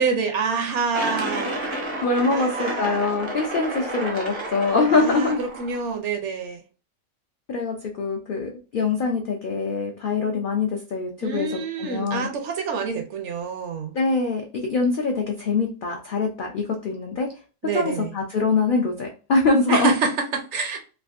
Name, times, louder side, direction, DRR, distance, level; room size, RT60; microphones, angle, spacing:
voice 1, 0.0-1.6 2.3-3.0 4.9-6.6 11.2-13.9 17.6-18.1 19.7-20.8, right 5 dB, 65° right, 0.8 m, -27 dB
sound 1, 0.9-5.9, right 1 dB, 40° right, 0.4 m, -31 dB
voice 2, 2.0-5.4 7.5-11.5 11.8-12.3 13.9-17.3 17.7-19.9, left 3 dB, 75° left, 0.4 m, -23 dB
3.4 x 2.4 x 2.4 m
omnidirectional pair, 1.5 m